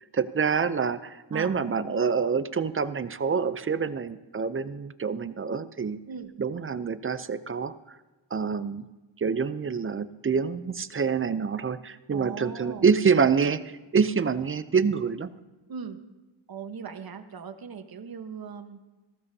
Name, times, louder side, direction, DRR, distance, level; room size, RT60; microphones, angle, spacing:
voice 1, 0.1-6.0 6.4-8.0 8.3-8.8 9.2-15.3, right 6 dB, 30° right, 13 dB, 0.5 m, -26 dB
voice 2, 12.1-12.9 15.7-16.0 16.5-18.8, right 6 dB, 50° right, 6 dB, 1.2 m, -39 dB
19.0 x 15.0 x 2.7 m, 1.1 s
cardioid pair, 95°, 47 cm